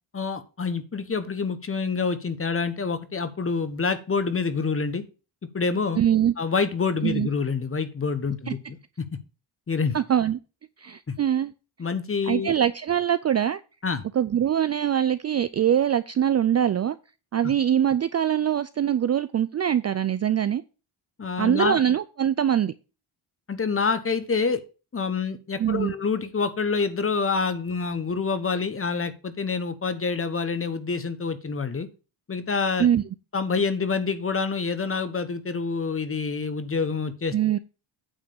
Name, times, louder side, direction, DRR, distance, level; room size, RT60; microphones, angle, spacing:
voice 1, 0.1-5.0 5.5-6.0 6.4-9.1 9.7-10.0 11.1-11.2 11.8-12.5 13.8-14.0 21.2-21.8 23.5-24.6 24.9-31.9 32.3-32.9 33.3-37.6, left 5 dB, 25° left, 1.1 m, -27 dB
voice 2, 6.0-6.3 7.0-7.3 8.5-8.6 9.9-10.4 10.8-11.5 12.2-13.6 14.1-17.0 17.3-20.6 21.4-22.7 25.6-25.9 32.8-33.0 37.3-37.6, right 10 dB, 35° right, 0.4 m, -23 dB
9.0 x 3.6 x 6.9 m
cardioid pair, 85°, 49 cm